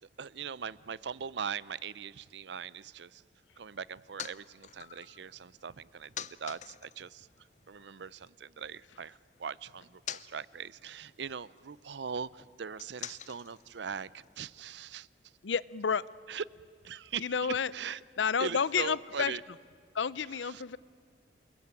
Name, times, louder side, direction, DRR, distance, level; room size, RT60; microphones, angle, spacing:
voice 1, 0.0-3.2 3.6-15.1 16.3-16.4 16.8-17.3 17.7-18.0 18.4-19.4 20.4-20.6, right 6 dB, 70° right, 20 dB, 0.6 m, -41 dB
sound 1, 3.7-8.3 8.6-14.7, left 9 dB, 40° left, 0.6 m, -49 dB
voice 2, 15.4-16.0 17.2-17.7 18.2-19.3 19.9-20.8, left 6 dB, 85° left, 19 dB, 0.6 m, -30 dB
29.0 x 21.5 x 8.9 m, 2.3 s
head